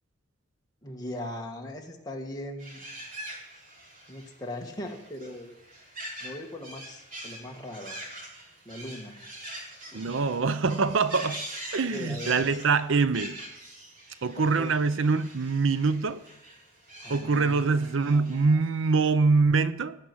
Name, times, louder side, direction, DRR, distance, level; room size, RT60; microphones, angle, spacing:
voice 1, 0.8-2.9 4.1-5.5 6.2-8.0 8.7-9.2 9.9-10.1 11.9-12.5 14.4-14.7 17.0-18.5, left 1 dB, 20° left, 1.8 m, -39 dB
sound 1, 2.6-18.5, right 1 dB, 45° right, 3.3 m, -44 dB
voice 2, 9.9-11.5 11.7-13.4 14.2-16.2 17.1-20.0, right 4 dB, 75° right, 0.6 m, -24 dB
17.5 x 6.0 x 9.7 m
head